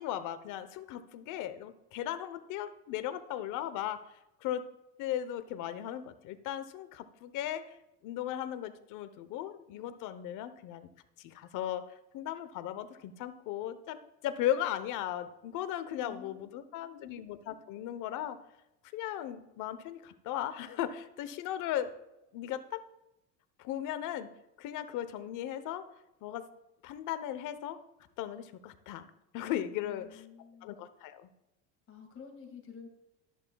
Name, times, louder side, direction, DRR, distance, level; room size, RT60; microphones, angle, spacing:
voice 1, 0.0-4.0 4.4-4.7 5.0-7.8 8.0-10.9 11.2-11.8 12.1-18.4 18.9-21.9 22.3-22.8 23.6-24.3 24.6-25.8 26.2-26.5 26.8-27.8 28.2-29.1 29.3-30.1 30.6-31.3, left 11 dB, 55° left, 12 dB, 1.0 m, -37 dB
voice 2, 16.0-17.2 29.8-30.7 31.9-32.9, left 6 dB, 35° left, 4 dB, 2.1 m, -51 dB
13.0 x 10.5 x 2.3 m, 0.92 s
supercardioid pair, 110°, 36 cm